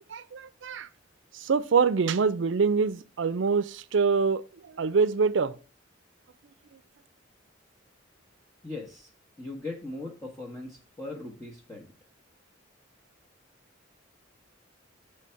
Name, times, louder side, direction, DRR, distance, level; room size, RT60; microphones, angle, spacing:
voice 1, 0.1-0.9 1.4-4.4 4.8-5.5, right 5 dB, 70° right, 0.5 m, -25 dB
voice 2, 8.6-9.1 9.4-11.9, left 2 dB, 15° left, 1.0 m, -39 dB
7.7 x 3.3 x 5.6 m
head